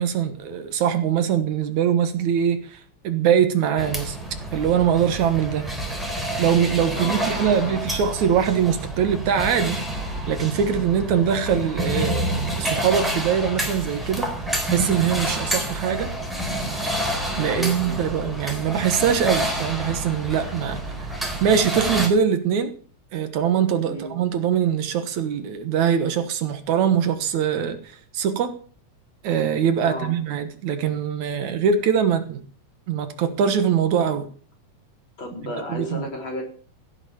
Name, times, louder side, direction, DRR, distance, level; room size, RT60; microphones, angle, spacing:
voice 1, 0.0-4.2 4.5-5.7 6.4-9.8 10.3-14.3 14.7-16.1 17.4-21.1 21.4-22.7 23.1-28.5 29.2-32.4 32.9-34.3 35.7-36.1, right 8 dB, 75° right, 2.7 m, -22 dB
sound 1, 3.8-22.1, right 1 dB, ahead, 3.4 m, -28 dB
voice 2, 6.9-7.9 17.4-18.5 23.8-24.2 29.8-30.1 35.2-36.4, left 1 dB, 40° left, 4.3 m, -33 dB
16.0 x 8.3 x 7.1 m
omnidirectional pair, 3.5 m